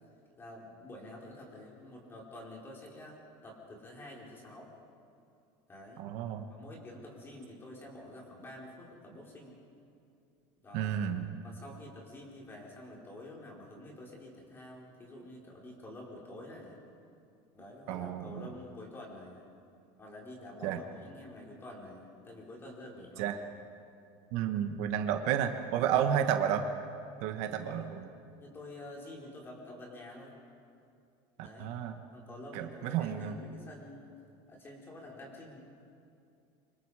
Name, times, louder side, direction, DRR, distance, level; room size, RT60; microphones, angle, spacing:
voice 1, 0.4-4.7 5.7-6.1 6.5-9.6 10.6-11.0 11.4-16.8 17.5-19.4 20.0-23.4 27.5-27.9 28.4-30.4 31.4-31.8 32.1-34.1 34.5-35.7, left 1 dB, 15° left, -2 dB, 4.5 m, -48 dB
voice 2, 6.0-6.4 10.7-11.2 17.9-18.5 20.6-20.8 23.2-23.3 24.3-26.6 27.2-28.1 31.6-31.9 32.5-33.4, right 9 dB, 60° right, 6 dB, 1.4 m, -31 dB
28.0 x 26.0 x 5.0 m, 2.5 s
cardioid pair, 165°, 13 cm